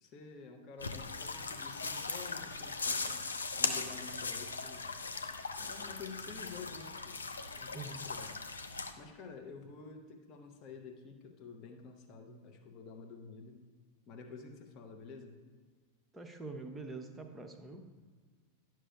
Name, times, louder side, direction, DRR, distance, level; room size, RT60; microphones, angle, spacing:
voice 1, 0.0-3.3 3.6-4.9 5.6-8.4 9.0-13.6 14.1-15.4 18.0-18.2, left 5 dB, 35° left, 3 dB, 0.9 m, -50 dB
sound 1, 0.8-8.9, left 4 dB, 75° left, 0.5 m, -39 dB
voice 2, 7.7-8.1 16.1-17.9, right 3 dB, 10° right, 4 dB, 0.7 m, -45 dB
11.0 x 6.2 x 2.3 m, 1.5 s
figure-of-eight pair, 90°, 0 cm